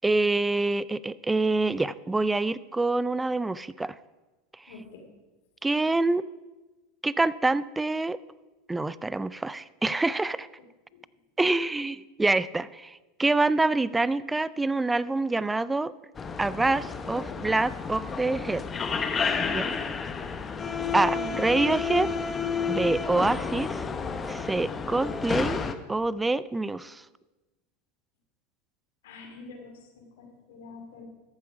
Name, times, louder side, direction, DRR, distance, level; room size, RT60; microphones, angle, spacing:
voice 1, 0.0-3.9 5.6-6.2 7.0-8.2 8.7-10.5 11.4-15.9 16.4-18.6 19.5-19.8 20.9-22.1 22.7-23.9 24.2-25.6 25.9-27.0, right 2 dB, 10° right, 18 dB, 0.4 m, -26 dB
voice 2, 4.7-5.1 11.5-11.6 20.9-21.4 29.0-31.0, left 3 dB, 75° left, 3 dB, 2.7 m, -45 dB
sound 1, 16.2-25.7, left 5 dB, 25° left, 0.9 m, -31 dB
14.0 x 8.2 x 4.9 m, 1.2 s
hypercardioid pair, 95°, 0 cm